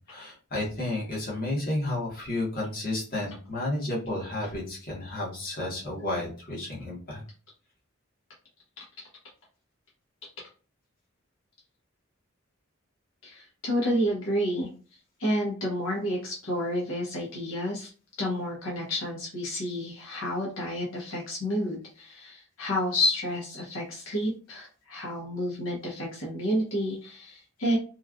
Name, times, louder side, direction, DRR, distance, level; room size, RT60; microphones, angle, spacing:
voice 1, 0.1-7.2, left 2 dB, 45° left, -4 dB, 1.2 m, -32 dB
voice 2, 8.8-9.1 13.2-14.7 15.2-17.9 18.2-27.8, equal, 75° left, -3 dB, 0.9 m, -30 dB
3.1 x 2.3 x 2.4 m, 0.37 s
head